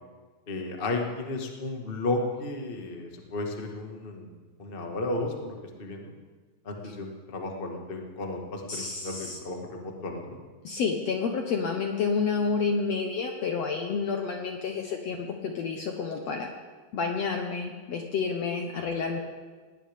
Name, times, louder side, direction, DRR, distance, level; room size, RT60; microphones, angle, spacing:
voice 1, 0.5-4.3 4.6-6.1 6.6-10.4 18.8-18.9, left 2 dB, 40° left, 1 dB, 0.7 m, -33 dB
voice 2, 8.7-9.4 10.6-16.5 16.9-19.2, left 5 dB, 65° left, 3 dB, 1.7 m, -29 dB
19.0 x 18.5 x 3.6 m, 1.4 s
omnidirectional pair, 4.2 m